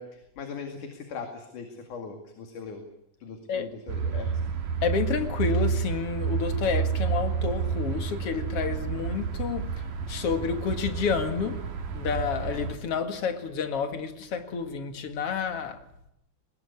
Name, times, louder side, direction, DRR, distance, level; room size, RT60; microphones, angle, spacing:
voice 1, 0.0-2.8 3.2-4.3, left 5 dB, 80° left, 3.8 m, -40 dB
sound 1, 3.9-12.7, right 6 dB, 85° right, 3.8 m, -30 dB
voice 2, 4.8-9.7 10.1-11.6 11.9-15.8, left 6 dB, 50° left, 2.7 m, -29 dB
22.0 x 20.5 x 9.6 m
omnidirectional pair, 3.6 m